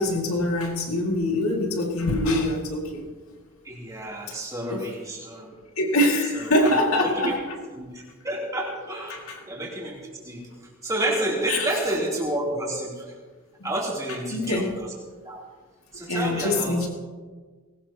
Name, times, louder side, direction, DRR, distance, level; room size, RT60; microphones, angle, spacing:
voice 1, 0.0-3.0 4.7-4.8 5.8-7.4 9.1-9.4 11.5-11.7 13.6-13.7 14.3-14.8 16.1-16.9, left 1 dB, 80° left, 0 dB, 2.3 m, -24 dB
voice 2, 3.6-5.5 6.3-7.3 7.8-10.0 10.2-10.4 10.8-13.1 13.6-14.9 15.2-15.4 15.9-16.8, right 1 dB, 15° right, -4 dB, 3.3 m, -30 dB
20.0 x 18.0 x 3.0 m, 1.4 s
head